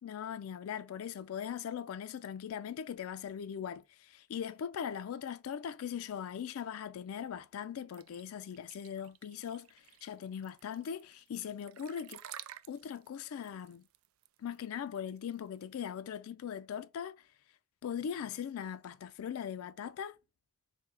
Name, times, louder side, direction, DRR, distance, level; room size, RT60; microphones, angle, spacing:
voice 1, 0.0-12.2 12.7-13.8 14.4-17.2 17.8-20.2, left 8 dB, 80° left, 0.3 m, -40 dB
sound 1, 7.9-15.6, right 11 dB, 70° right, 0.4 m, -52 dB
4.6 x 2.7 x 3.3 m
head